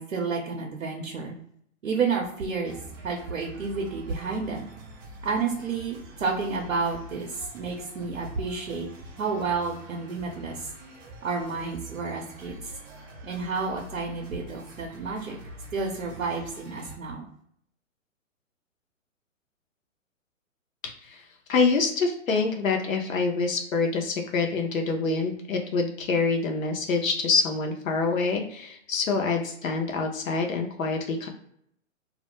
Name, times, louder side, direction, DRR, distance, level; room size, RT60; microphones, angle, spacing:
voice 1, 0.0-1.3 1.8-2.8 3.0-4.6 5.2-8.9 9.2-10.7 11.2-12.6 13.2-15.4 15.7-17.2, right 4 dB, 80° right, 0 dB, 0.8 m, -30 dB
sound 1, 2.6-17.0, right 1 dB, 15° right, 0.4 m, -45 dB
voice 2, 20.8-31.3, left 4 dB, 80° left, 3 dB, 0.7 m, -26 dB
2.3 x 2.2 x 2.9 m, 0.69 s
hypercardioid pair, 130°, 40 cm